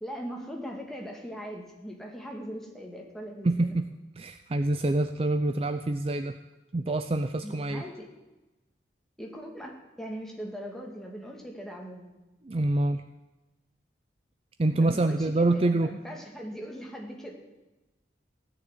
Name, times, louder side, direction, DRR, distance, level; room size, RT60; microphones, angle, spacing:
voice 1, 0.0-3.8 7.4-8.1 9.2-12.1 14.8-17.3, equal, ahead, 0 dB, 2.1 m, -40 dB
voice 2, 3.4-3.9 4.2-6.4 6.7-7.8 12.4-13.0 14.6-15.9, right 2 dB, 30° right, 9 dB, 0.5 m, -26 dB
15.5 x 7.0 x 9.8 m, 1.1 s
head